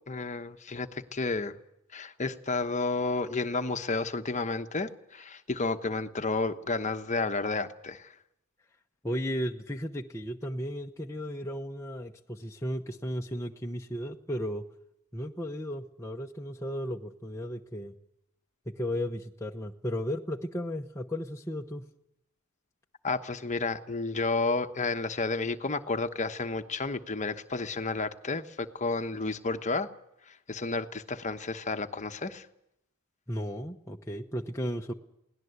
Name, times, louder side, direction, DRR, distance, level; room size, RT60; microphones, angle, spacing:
voice 1, 0.1-1.5 1.9-8.1 23.0-29.9 30.3-32.5, left 3 dB, 35° left, 8 dB, 1.1 m, -31 dB
voice 2, 9.0-14.7 15.1-17.9 18.7-21.8 33.3-34.9, equal, 15° left, 1 dB, 0.8 m, -35 dB
22.5 x 18.0 x 8.1 m, 0.82 s
head